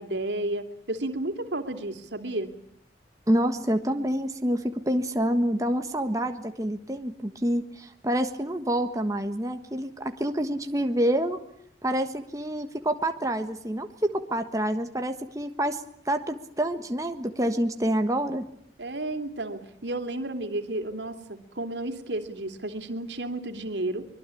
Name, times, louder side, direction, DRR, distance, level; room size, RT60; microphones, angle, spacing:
voice 1, 0.0-2.5 18.8-24.1, right 2 dB, 80° right, 7 dB, 3.0 m, -32 dB
voice 2, 3.3-11.4 11.8-18.4, right 1 dB, 20° right, 6 dB, 1.4 m, -27 dB
24.5 x 22.5 x 8.5 m, 0.69 s
head